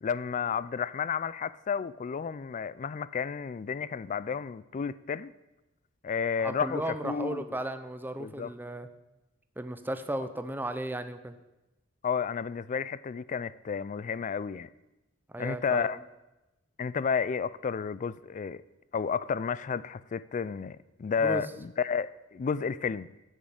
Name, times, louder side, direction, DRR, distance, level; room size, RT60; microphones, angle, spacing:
voice 1, 0.0-5.3 6.0-7.4 8.2-8.5 12.0-14.7 15.4-16.0 16.8-18.6 18.9-23.1, left 6 dB, 40° left, 0.3 m, -31 dB
voice 2, 6.4-8.9 9.6-11.3 15.3-16.0 21.2-21.4, right 1 dB, 10° right, 0.6 m, -35 dB
9.0 x 6.3 x 8.1 m
head